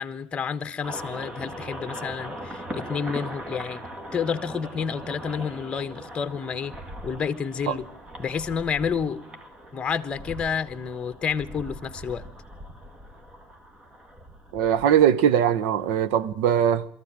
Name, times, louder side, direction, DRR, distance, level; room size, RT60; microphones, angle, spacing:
voice 1, 0.0-3.8 4.1-6.7 7.0-7.9 8.2-9.2 9.7-12.2, left 6 dB, 25° left, 1.2 m, -29 dB
sound 1, 0.8-16.2, equal, 20° right, 2.1 m, -40 dB
voice 2, 14.5-16.8, right 9 dB, 75° right, 1.2 m, -21 dB
22.5 x 14.5 x 9.0 m
supercardioid pair, 130°, 5 cm